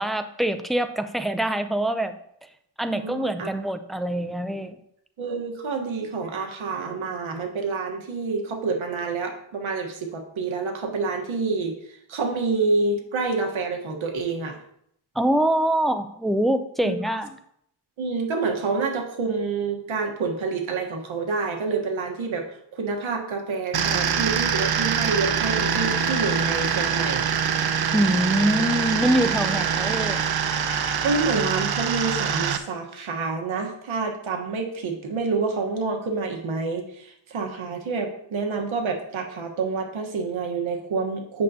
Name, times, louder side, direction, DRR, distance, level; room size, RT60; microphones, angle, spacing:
voice 1, 0.0-2.2 2.8-4.8 15.2-17.3 27.9-30.2, right 1 dB, ahead, 9 dB, 0.4 m, -24 dB
voice 2, 2.9-3.5 5.2-14.6 16.8-17.2 18.0-27.3 31.0-41.4, right 4 dB, 75° right, 3 dB, 1.4 m, -28 dB
sound 1, 23.7-32.6, right 7 dB, 50° right, 0.7 m, -24 dB
8.6 x 6.5 x 2.8 m, 0.70 s
wide cardioid pair, 110°, 48 cm